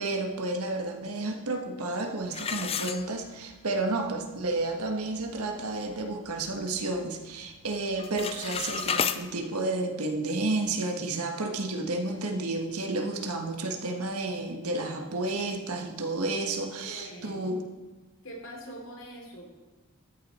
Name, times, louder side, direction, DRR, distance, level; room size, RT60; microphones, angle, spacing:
voice 1, 0.0-17.7, right 2 dB, 85° right, 4 dB, 1.5 m, -31 dB
sound 1, 2.3-3.6 4.1-4.2 4.7-4.8 5.2-5.5 5.9-7.1 7.3-7.7 7.9-9.2, left 7 dB, 25° left, 0.4 m, -32 dB
voice 2, 16.8-17.5 18.2-19.5, equal, 60° left, 0 dB, 2.9 m, -43 dB
13.5 x 9.8 x 4.3 m, 1.2 s
head